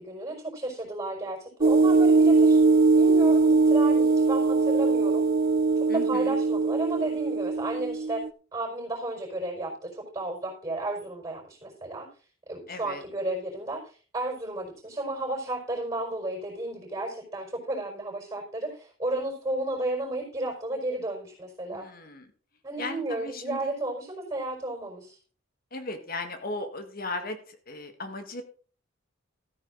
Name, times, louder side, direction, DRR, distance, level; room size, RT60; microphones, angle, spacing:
voice 1, 0.0-2.6 3.0-5.3 5.9-8.2 8.5-12.1 12.5-21.9 22.6-25.2, right 2 dB, 20° right, -1 dB, 4.9 m, -33 dB
sound 1, 1.6-8.3, right 3 dB, 50° right, 0.6 m, -21 dB
voice 2, 5.9-6.4 12.7-13.0 21.7-22.3 22.8-23.7 25.7-28.4, left 2 dB, 45° left, 8 dB, 1.7 m, -37 dB
14.0 x 8.9 x 3.9 m, 0.38 s
head